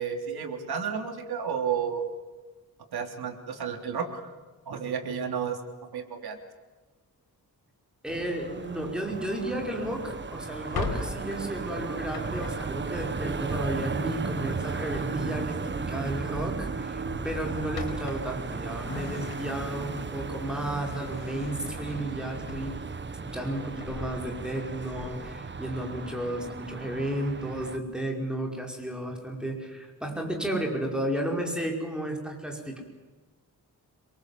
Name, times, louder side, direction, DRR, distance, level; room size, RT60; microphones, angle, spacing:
voice 1, 0.0-2.0 2.9-4.2 4.7-5.6 5.9-6.4, right 7 dB, 90° right, 4 dB, 3.6 m, -31 dB
voice 2, 8.0-22.8 23.2-32.8, right 1 dB, ahead, 1 dB, 5.1 m, -33 dB
sound 1, 8.1-27.8, right 4 dB, 30° right, 1.2 m, -35 dB
Drawer open or close, 10.5-14.2 15.7-16.0 16.3-16.5 16.9-19.9 20.3-23.0 23.5-25.4, left 4 dB, 85° left, 4.7 m, -40 dB
26.5 x 23.0 x 7.9 m, 1.3 s
wide cardioid pair, 155°, 37 cm